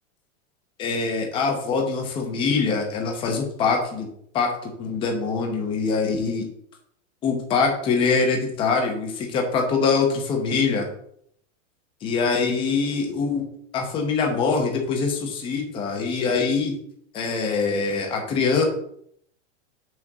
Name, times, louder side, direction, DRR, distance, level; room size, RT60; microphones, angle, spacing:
voice 1, 0.8-4.1 4.3-6.4 7.2-10.9 12.0-13.4 13.7-16.7 17.1-18.6, left 4 dB, 15° left, 2 dB, 0.9 m, -23 dB
6.2 x 4.4 x 6.5 m, 0.68 s
supercardioid pair, 180°, 38 cm